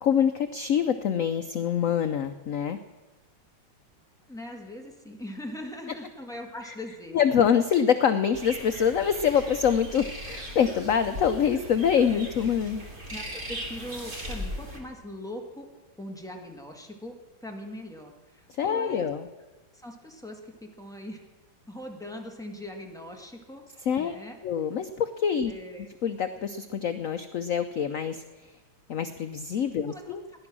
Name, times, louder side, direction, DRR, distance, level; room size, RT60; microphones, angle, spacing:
voice 1, 0.0-2.8 7.1-12.8 18.5-19.3 23.9-24.2 24.4-25.5 26.0-28.2 28.9-30.2, left 8 dB, 85° left, 10 dB, 0.7 m, -25 dB
voice 2, 4.3-7.3 12.1-12.2 13.0-15.7 16.0-17.1 17.4-19.1 19.7-21.3 21.7-24.4 25.5-25.9 29.8-30.2, left 1 dB, ahead, 1 dB, 1.5 m, -41 dB
sound 1, 8.3-14.8, equal, 25° right, 2.3 m, -38 dB
17.0 x 11.0 x 6.1 m, 1.2 s
omnidirectional pair, 2.2 m